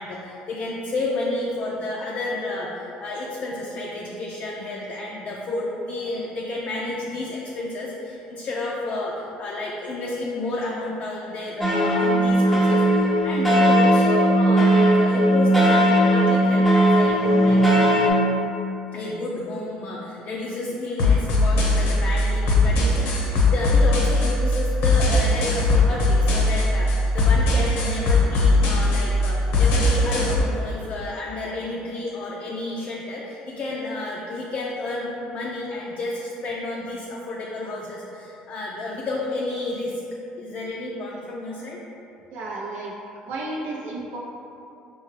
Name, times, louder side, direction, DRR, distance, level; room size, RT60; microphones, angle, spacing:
voice 1, 0.0-18.2 18.9-40.0 40.4-41.8, left 2 dB, 45° left, -4 dB, 0.4 m, -31 dB
sound 1, 11.6-18.1, right 1 dB, ahead, 0.7 m, -18 dB
sound 2, 21.0-30.4, left 2 dB, 80° left, 0.8 m, -20 dB
voice 2, 42.3-42.9 43.2-44.2, right 2 dB, 70° right, -4 dB, 0.6 m, -32 dB
4.4 x 2.3 x 3.2 m, 2.8 s
supercardioid pair, 100°, 3 cm